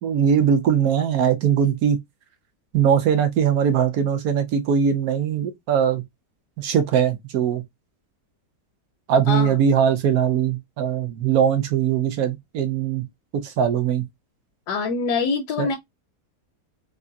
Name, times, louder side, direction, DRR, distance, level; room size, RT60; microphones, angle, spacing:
voice 1, 0.0-2.0 2.7-6.0 6.6-7.6 9.1-13.1 13.4-14.0 15.6-15.7, right 8 dB, 65° right, 1.1 m, -21 dB
voice 2, 14.7-15.8, left 4 dB, 75° left, 1.1 m, -24 dB
3.7 x 2.1 x 2.6 m
omnidirectional pair, 1.8 m